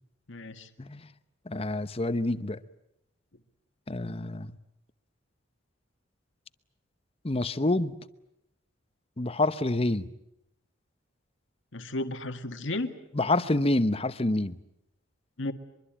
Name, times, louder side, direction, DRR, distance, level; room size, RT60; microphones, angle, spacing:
voice 1, 0.3-0.7 11.7-12.9 15.4-15.5, left 2 dB, 70° left, 1.7 m, -33 dB
voice 2, 1.5-2.6 3.9-4.6 7.2-7.9 9.2-10.1 13.1-14.5, left 2 dB, 30° left, 0.9 m, -27 dB
24.0 x 23.5 x 8.8 m
head